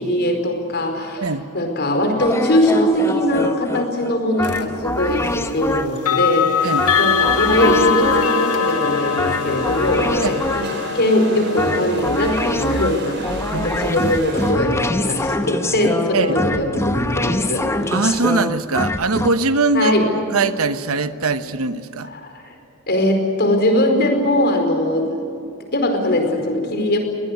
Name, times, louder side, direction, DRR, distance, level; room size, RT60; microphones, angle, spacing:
voice 1, 0.0-17.7 19.7-20.1 22.1-22.5 22.9-25.3 25.7-27.0, left 1 dB, 50° left, 5 dB, 4.8 m, -20 dB
sound 1, 2.2-6.1 6.8-8.5 9.2-10.9 11.6-19.3, left 1 dB, 10° left, 0.9 m, -25 dB
sound 2, 4.4-4.7 6.0-16.8, left 6 dB, 85° left, 1.4 m, -23 dB
sound 3, 6.6-14.5, right 3 dB, 55° right, 4.7 m, -36 dB
voice 2, 13.5-14.1 16.1-16.4 17.9-19.9 20.3-22.1, right 3 dB, 70° right, 11 dB, 1.1 m, -21 dB
22.5 x 18.5 x 9.6 m, 2.7 s
head